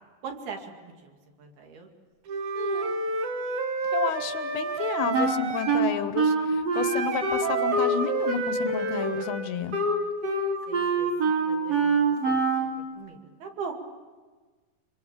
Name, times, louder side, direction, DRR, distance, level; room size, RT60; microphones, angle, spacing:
voice 1, 0.2-1.9 9.0-9.1 10.7-12.4 13.0-13.7, right 5 dB, 80° right, 3 dB, 4.3 m, -41 dB
Wind instrument woodwind instrument, 2.3-5.9 6.7-9.3, right 4 dB, 60° right, 2.6 m, -30 dB
voice 2, 2.6-3.0 3.9-9.8, left 8 dB, 85° left, 11 dB, 2.9 m, -31 dB
Wind instrument woodwind instrument 2, 5.1-8.0 8.3-12.8, right 3 dB, 45° right, 4.0 m, -25 dB
25.0 x 24.5 x 7.5 m, 1.3 s
omnidirectional pair, 4.4 m